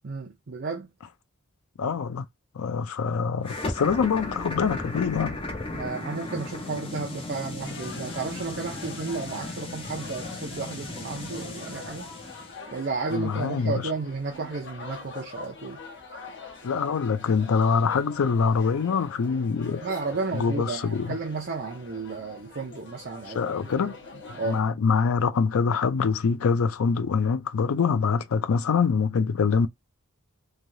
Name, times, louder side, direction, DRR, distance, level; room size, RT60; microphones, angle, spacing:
voice 1, 0.0-0.9 5.7-12.1 12.7-15.8 19.8-24.0 24.3-24.7, right 4 dB, 50° right, 0.6 m, -33 dB
voice 2, 1.8-2.3 2.5-5.4 13.1-13.9 16.6-19.8 20.3-21.2 23.3-23.9 24.4-29.7, left 5 dB, 75° left, 0.4 m, -24 dB
sound 1, 3.4-12.6, left 2 dB, 25° left, 0.6 m, -36 dB
sound 2, 7.6-24.6, left 4 dB, 60° left, 1.0 m, -44 dB
3.2 x 2.3 x 2.6 m
head